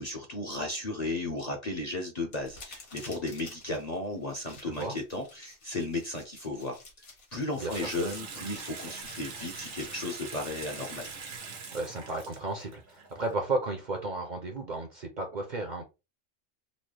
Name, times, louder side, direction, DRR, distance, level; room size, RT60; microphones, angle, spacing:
voice 1, 0.0-6.8 7.3-11.1, left 2 dB, 40° left, 1 dB, 0.7 m, -35 dB
sound 1, 2.3-11.4, left 3 dB, 65° left, 1.7 m, -52 dB
Water tap faucet / Sink (filling or washing) / Bathtub (filling or washing), 7.7-13.4, right 5 dB, 90° right, 1.3 m, -43 dB
voice 2, 11.7-15.9, right 2 dB, 45° right, 3 dB, 0.7 m, -33 dB
4.0 x 2.2 x 3.2 m, 0.27 s
omnidirectional pair, 1.3 m